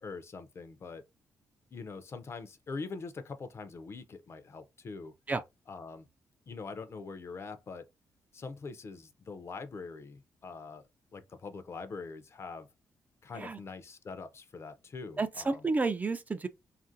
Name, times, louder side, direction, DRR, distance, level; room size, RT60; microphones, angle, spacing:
voice 1, 0.0-1.0 1.7-5.1 5.7-6.1 6.5-7.8 8.3-10.9 11.1-12.7 13.2-15.7, left 4 dB, 40° left, 0.5 m, -43 dB
voice 2, 15.2-16.5, right 3 dB, 25° right, 0.3 m, -31 dB
2.8 x 2.5 x 2.6 m
cardioid pair, 90°, 7 cm